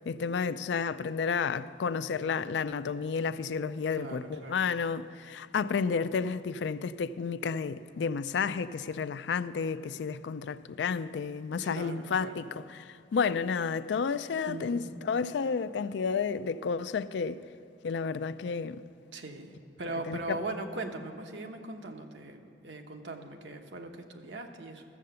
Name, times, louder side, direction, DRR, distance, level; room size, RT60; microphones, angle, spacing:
voice 1, 0.1-17.4 17.8-18.8 20.1-20.4, left 5 dB, 80° left, 0.4 m, -31 dB
voice 2, 3.9-4.6 11.6-12.4 14.4-14.9 19.1-24.8, right 2 dB, 85° right, 1.0 m, -40 dB
13.5 x 7.6 x 6.8 m
head